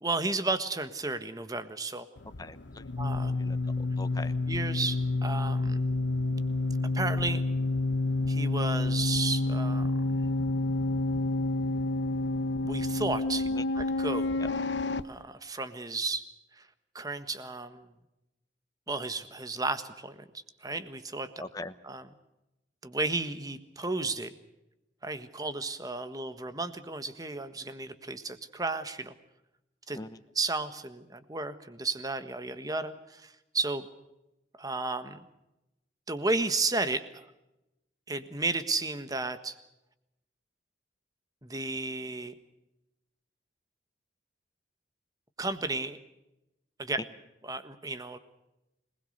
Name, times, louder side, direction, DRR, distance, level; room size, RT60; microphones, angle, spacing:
voice 1, 0.0-2.1 3.0-3.3 4.5-5.8 6.9-7.4 8.3-9.9 12.6-13.5 13.7-14.3 15.0-16.2 16.5-16.7 16.9-17.9 18.9-21.3 21.8-22.1 22.8-24.3 25.0-29.1 29.9-30.0 30.3-33.9 34.6-35.2 36.1-37.3 38.1-39.6 41.4-42.3 45.4-46.0 46.8-47.0 47.4-48.2, right 3 dB, 20° right, 10 dB, 1.5 m, -33 dB
sound 1, 2.2-15.0, left 2 dB, 70° left, 1.0 m, -29 dB
voice 2, 2.4-2.8 3.4-4.3 13.5-13.6 21.4-21.7 29.9-30.1, left 2 dB, 20° left, 11 dB, 1.1 m, -41 dB
26.0 x 20.0 x 6.6 m, 0.92 s
head